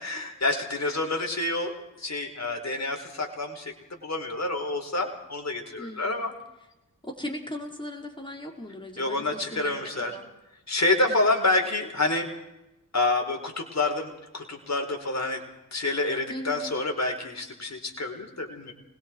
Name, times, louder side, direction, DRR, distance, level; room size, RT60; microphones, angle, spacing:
voice 1, 0.0-3.7 4.0-6.3 9.0-10.1 10.7-12.4 12.9-15.4 15.7-18.7, left 2 dB, 50° left, 3 dB, 4.9 m, -28 dB
voice 2, 5.8-6.3 7.0-10.3 11.1-11.3 16.3-16.7, left 1 dB, 15° left, 1 dB, 4.9 m, -38 dB
26.0 x 21.5 x 4.8 m, 0.91 s
cardioid pair, 55°, 34 cm